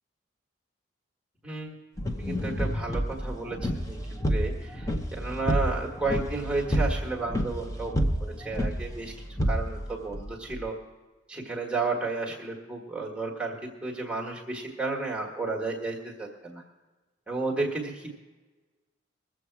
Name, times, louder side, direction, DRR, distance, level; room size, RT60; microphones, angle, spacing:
sound 1, 2.0-10.6, equal, 15° left, 0.9 m, -29 dB
voice 1, 2.2-4.0 4.3-9.1 9.5-10.7 11.3-16.6 17.3-18.1, right 3 dB, 5° right, -2 dB, 1.6 m, -32 dB
21.0 x 7.8 x 4.7 m, 1.2 s
head